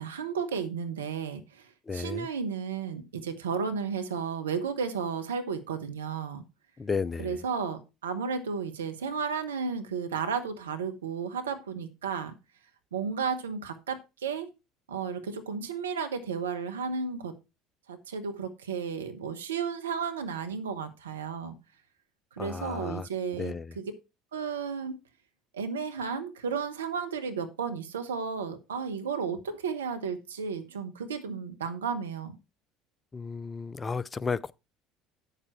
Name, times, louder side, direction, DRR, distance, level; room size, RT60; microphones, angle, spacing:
voice 1, 0.0-6.4 7.2-12.3 12.9-14.5 14.9-17.3 17.9-21.6 22.4-23.9 24.3-25.0 25.5-32.4, right 6 dB, 85° right, 1.2 m, -33 dB
voice 2, 1.9-2.3 6.8-7.4 22.4-23.1 23.4-23.7 33.1-34.5, left 5 dB, 25° left, 0.6 m, -33 dB
9.1 x 6.7 x 4.5 m
hypercardioid pair, 65°, 0 cm